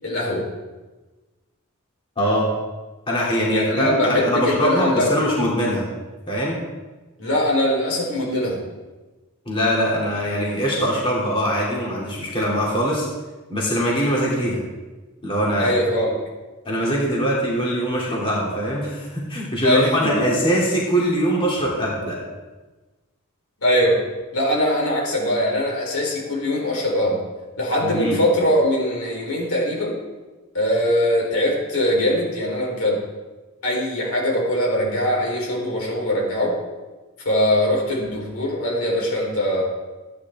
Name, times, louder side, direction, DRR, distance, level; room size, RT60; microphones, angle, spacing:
voice 1, 0.0-0.5 3.5-5.1 7.2-8.6 15.6-16.2 19.6-20.4 23.6-24.0 24.3-27.2 27.6-30.0 30.5-33.1 33.6-36.6 37.2-39.6, left 1 dB, 75° left, -2 dB, 4.0 m, -21 dB
voice 2, 2.2-2.5 3.1-5.8 6.3-6.6 9.5-13.1 13.5-14.6 15.2-15.7 16.6-22.2 27.8-28.2, equal, 25° left, -5 dB, 2.8 m, -22 dB
15.0 x 10.0 x 3.6 m, 1.2 s
head